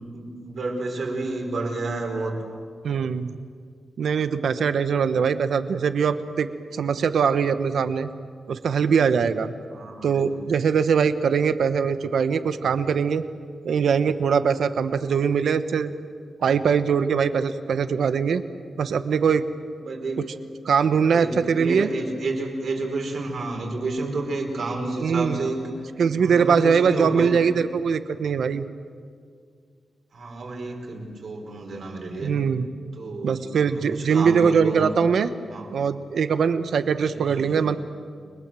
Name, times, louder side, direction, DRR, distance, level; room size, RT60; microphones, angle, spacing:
voice 1, 0.1-2.3 9.7-10.3 19.8-20.3 21.1-25.7 26.1-27.4 30.1-32.3 32.9-33.4 33.7-34.9 35.5-35.8 37.1-37.7, right 2 dB, 60° right, 2 dB, 4.9 m, -30 dB
voice 2, 2.8-3.3 4.0-8.1 8.5-9.5 10.0-13.3 13.6-15.9 16.4-18.4 18.8-19.5 20.6-21.9 25.0-25.4 26.0-28.7 32.2-32.7 33.2-35.3 35.7-37.8, right 6 dB, 75° right, 11 dB, 1.2 m, -22 dB
30.0 x 22.5 x 7.7 m, 2.1 s
wide cardioid pair, 150°, 0 cm